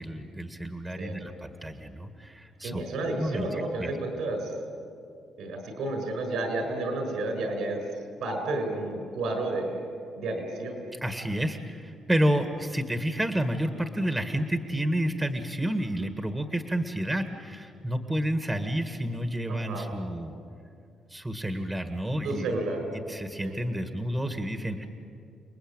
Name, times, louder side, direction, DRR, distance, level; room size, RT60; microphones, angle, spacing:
voice 1, 0.0-2.8 3.2-4.0 10.9-20.3 21.1-22.5 22.9-24.9, right 1 dB, 10° right, 7 dB, 1.7 m, -30 dB
voice 2, 2.6-4.4 5.4-7.8 8.2-9.7 10.2-10.8 19.5-19.9 22.2-22.8 23.4-23.6, right 2 dB, 80° right, 4 dB, 6.7 m, -31 dB
30.0 x 20.0 x 9.0 m, 2.5 s
cardioid pair, 90°, 0 cm